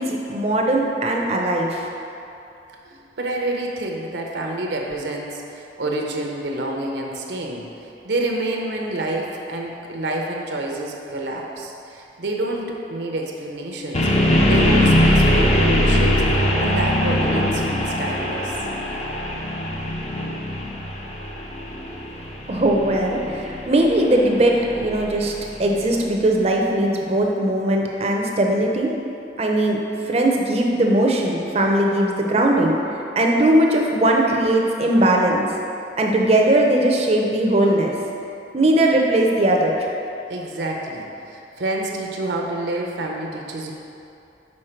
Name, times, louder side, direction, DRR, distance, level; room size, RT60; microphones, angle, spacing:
voice 1, 0.0-1.9 22.5-25.3 25.6-29.0 29.4-29.8 30.1-35.5 36.0-37.9 38.5-39.9, right 1 dB, 35° right, 0 dB, 0.5 m, -19 dB
voice 2, 2.9-7.7 8.0-14.1 14.4-16.2 16.6-18.6 40.3-43.7, right 2 dB, 75° right, 0 dB, 0.7 m, -28 dB
sound 1, 13.9-25.9, equal, 35° left, 0.6 m, -21 dB
6.4 x 4.2 x 4.4 m, 2.8 s
head